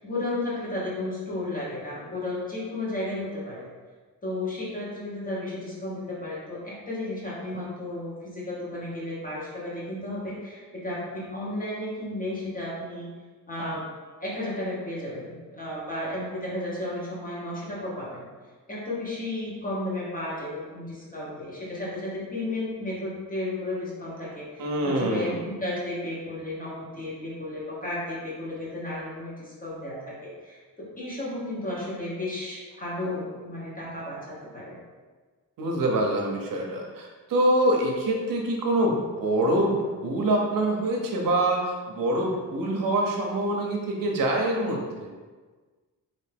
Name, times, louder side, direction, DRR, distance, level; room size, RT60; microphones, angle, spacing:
voice 1, 0.0-3.7 4.2-13.1 13.5-13.9 14.2-18.3 18.7-34.8, left 1 dB, 25° left, -6 dB, 1.1 m, -33 dB
voice 2, 24.6-25.4 35.6-45.1, right 1 dB, 75° right, 0 dB, 0.7 m, -25 dB
3.3 x 2.7 x 3.3 m, 1.4 s
wide cardioid pair, 130°, 34 cm